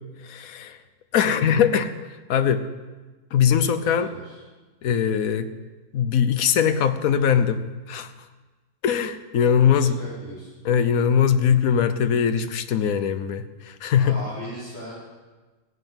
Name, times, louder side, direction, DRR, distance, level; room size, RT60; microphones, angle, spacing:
voice 1, 0.2-0.8 1.1-1.9 2.3-2.6 3.3-4.1 4.8-5.5 5.9-8.1 8.8-10.1 10.6-14.2, left 8 dB, 65° left, 11 dB, 1.2 m, -21 dB
voice 2, 3.8-4.4 9.7-10.5 14.0-14.9, equal, 30° left, -12 dB, 4.8 m, -38 dB
15.0 x 7.9 x 7.3 m, 1.3 s
omnidirectional pair, 1.6 m